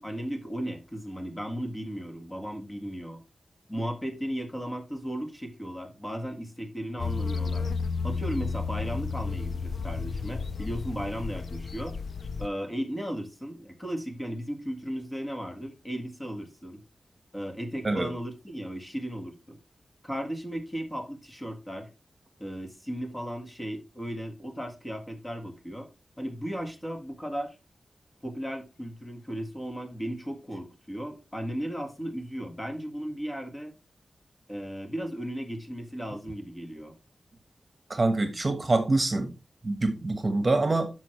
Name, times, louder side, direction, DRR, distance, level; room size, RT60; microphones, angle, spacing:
voice 1, 0.0-3.2 3.7-7.7 8.0-12.0 12.4-16.8 17.3-19.6 20.0-21.9 22.4-25.9 26.2-27.6 28.2-33.7 34.5-36.9, equal, 15° left, 1.8 m, -35 dB
sound 1, 7.0-12.5, left 4 dB, 60° left, 0.4 m, -32 dB
voice 2, 37.9-39.3 39.6-40.9, right 2 dB, 30° right, 1.3 m, -25 dB
9.7 x 6.2 x 3.2 m
wide cardioid pair, 105°, 0 cm